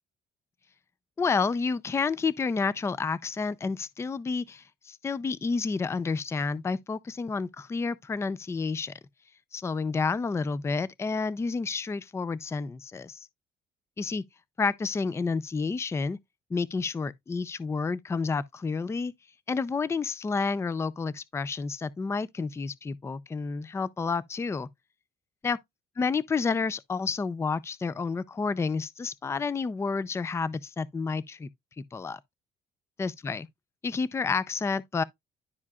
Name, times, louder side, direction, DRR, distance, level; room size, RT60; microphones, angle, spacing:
voice 1, 1.2-8.9 9.5-13.3 14.0-14.2 14.6-16.2 16.5-19.1 19.5-24.7 25.4-25.6 26.0-31.5 31.8-32.2 33.0-33.5 33.8-35.0, left 4 dB, 15° left, 0.4 m, -30 dB
11.0 x 4.7 x 2.3 m
cardioid pair, 110°, 17 cm